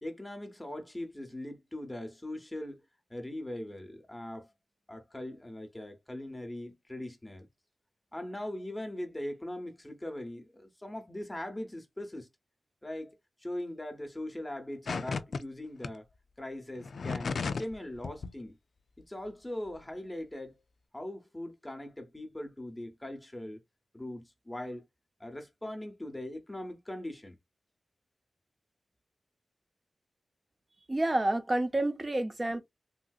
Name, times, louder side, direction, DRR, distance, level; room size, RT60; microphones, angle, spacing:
voice 1, 0.0-2.8 3.1-4.5 4.9-7.5 8.1-12.3 12.8-16.0 16.4-18.6 19.1-20.6 20.9-23.6 23.9-24.9 25.2-27.4, left 1 dB, 10° left, 0.8 m, -40 dB
sound 1, 14.9-15.4 15.8-15.9 16.8-17.7 18.0-18.3, left 4 dB, 65° left, 0.4 m, -34 dB
voice 2, 30.9-32.6, right 1 dB, 20° right, 0.6 m, -29 dB
3.5 x 2.6 x 2.3 m
wide cardioid pair, 145°, 0 cm